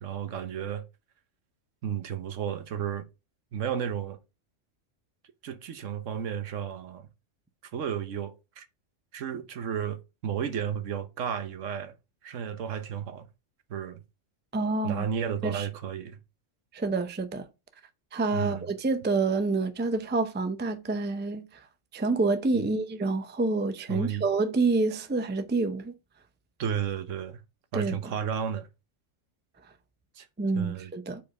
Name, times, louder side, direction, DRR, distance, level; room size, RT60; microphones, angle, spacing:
voice 1, 0.0-0.9 1.8-3.1 3.5-4.2 5.4-7.1 7.7-8.7 9.1-11.9 12.2-13.3 13.7-14.0 14.8-16.2 18.3-18.7 22.5-22.7 23.9-24.3 26.6-27.4 27.7-28.7 30.2-30.3 30.5-30.9, right 8 dB, 75° right, 1.2 m, -33 dB
voice 2, 14.5-15.0 15.4-15.7 16.7-17.5 18.1-21.6 21.9-25.9 27.7-28.1 30.4-31.2, right 3 dB, 15° right, 0.4 m, -28 dB
5.2 x 4.5 x 5.2 m
omnidirectional pair, 1.3 m